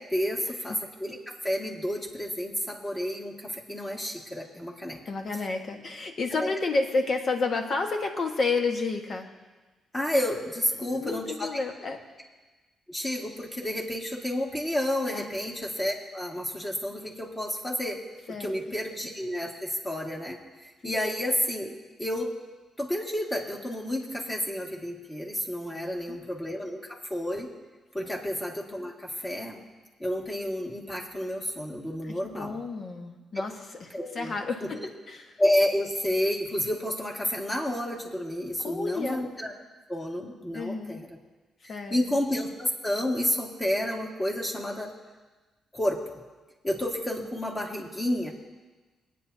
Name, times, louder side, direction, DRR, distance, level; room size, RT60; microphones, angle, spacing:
voice 1, 0.0-5.0 6.3-6.5 9.9-11.6 12.9-18.0 18.4-22.3 22.8-27.5 27.9-29.6 30.0-32.6 33.9-34.3 34.6-34.7 35.4-39.5 39.9-41.2 41.6-44.9 45.7-46.0 46.6-48.3, left 1 dB, 20° left, -1 dB, 2.0 m, -30 dB
voice 2, 5.0-9.3 10.8-12.0 15.1-15.3 18.3-18.5 20.8-20.9 25.7-26.2 28.0-28.1 32.0-33.5 33.8-34.8 35.1-35.3 38.6-39.2 40.5-41.0 41.7-42.2, left 3 dB, 45° left, 3 dB, 1.4 m, -31 dB
23.5 x 9.4 x 2.8 m, 1.2 s
cardioid pair, 120°, 0 cm